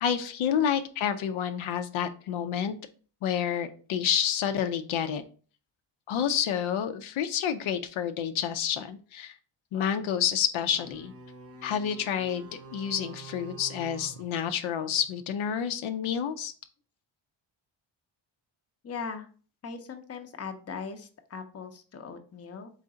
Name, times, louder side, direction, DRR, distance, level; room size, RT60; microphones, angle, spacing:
voice 1, 0.0-2.7 3.2-5.2 6.1-9.3 9.7-11.1 11.6-16.5, left 8 dB, 80° left, 9 dB, 0.6 m, -29 dB
sound 1, 10.7-15.2, right 4 dB, 30° right, 0.8 m, -48 dB
voice 2, 18.8-19.3 19.6-22.7, left 5 dB, 30° left, 6 dB, 0.6 m, -39 dB
3.9 x 3.2 x 3.7 m, 0.40 s
cardioid pair, 125°, 48 cm